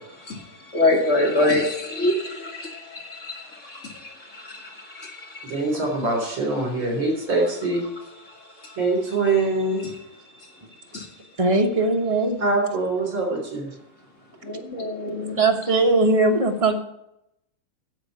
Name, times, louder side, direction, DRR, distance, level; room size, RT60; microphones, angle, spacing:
voice 1, 0.2-5.8 8.3-8.8 9.8-9.9 10.2-10.6 10.9-11.2 14.4-15.4, left 2 dB, 35° left, 1 dB, 2.6 m, -26 dB
voice 2, 5.4-7.8 8.8-9.9 12.4-13.7, right 2 dB, 65° right, 1 dB, 4.6 m, -23 dB
voice 3, 11.4-12.4 15.3-16.8, right 2 dB, 25° right, 3 dB, 0.9 m, -20 dB
10.0 x 7.5 x 9.1 m, 0.82 s
omnidirectional pair, 2.4 m